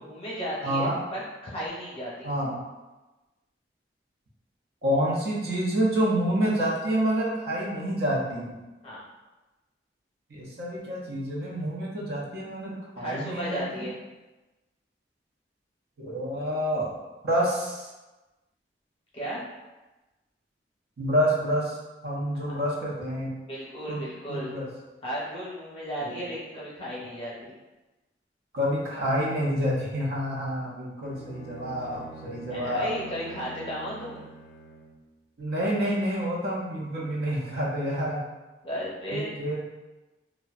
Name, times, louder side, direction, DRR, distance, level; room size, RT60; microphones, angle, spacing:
voice 1, 0.0-2.3 8.8-9.0 13.0-13.9 19.1-19.4 22.4-22.6 23.5-24.5 25.0-27.5 32.5-34.3 38.6-39.3, equal, 30° left, -7 dB, 0.7 m, -34 dB
voice 2, 0.6-1.0 2.2-2.6 4.8-8.6 10.3-13.9 16.0-16.9 17.2-17.9 21.0-21.8 22.0-23.3 23.9-24.0 24.3-24.7 26.0-26.2 28.5-32.9 35.4-38.2 39.1-39.7, equal, 60° right, -4 dB, 0.6 m, -28 dB
Bowed string instrument, 31.0-35.1, right 2 dB, 70° left, 0.3 m, -45 dB
2.6 x 2.1 x 2.3 m, 1.1 s
head